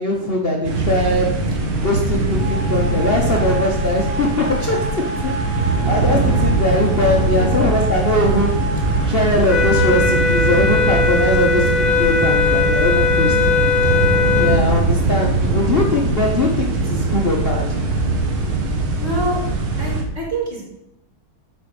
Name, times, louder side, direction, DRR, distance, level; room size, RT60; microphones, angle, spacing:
voice 1, 0.0-4.9 5.2-8.6 9.1-17.8, left 1 dB, 50° left, -1 dB, 0.7 m, -21 dB
sound 1, 0.6-20.0, right 2 dB, 80° right, 2.1 m, -21 dB
sound 2, 2.4-9.0, right 2 dB, 55° right, 1.6 m, -31 dB
sound 3, 9.5-14.7, left 5 dB, 75° left, 1.5 m, -19 dB
voice 2, 19.0-19.4 19.8-20.6, right 1 dB, 30° right, -4 dB, 2.9 m, -26 dB
8.3 x 4.3 x 6.5 m, 0.84 s
omnidirectional pair, 2.2 m